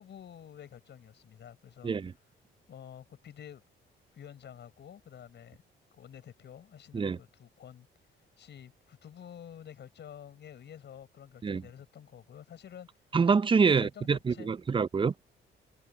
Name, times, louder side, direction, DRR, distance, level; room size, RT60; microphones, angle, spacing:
voice 1, 0.0-1.9 2.7-3.6 4.1-5.6 5.9-7.9 8.4-12.9 13.6-14.5, left 9 dB, 60° left, 6.3 m, -49 dB
voice 2, 13.1-15.1, right 5 dB, 25° right, 0.6 m, -26 dB
cardioid pair, 90°, 20 cm